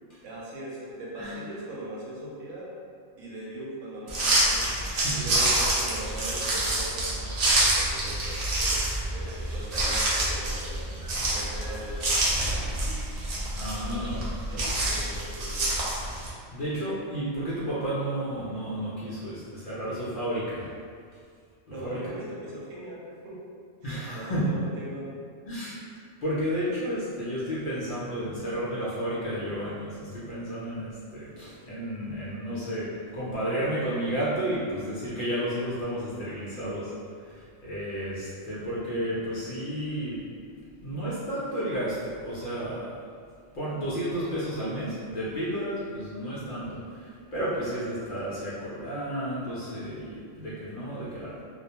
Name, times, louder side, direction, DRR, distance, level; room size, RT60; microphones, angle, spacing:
voice 1, 0.2-2.7 3.2-4.7 5.1-12.1 13.9-15.7 21.7-23.4 23.8-25.1, right 1 dB, 85° right, -5 dB, 1.0 m, -40 dB
sound 1, 4.1-16.3, right 1 dB, 70° right, 0.3 m, -27 dB
voice 2, 4.6-5.5 13.6-14.2 14.5-14.9 16.5-20.7 21.7-22.0 23.8-24.6 25.5-25.8 26.2-36.9 37.2-40.2 40.8-42.9 43.5-51.4, right 1 dB, 60° left, -9 dB, 0.6 m, -32 dB
2.3 x 2.1 x 2.8 m, 2.2 s
omnidirectional pair, 1.3 m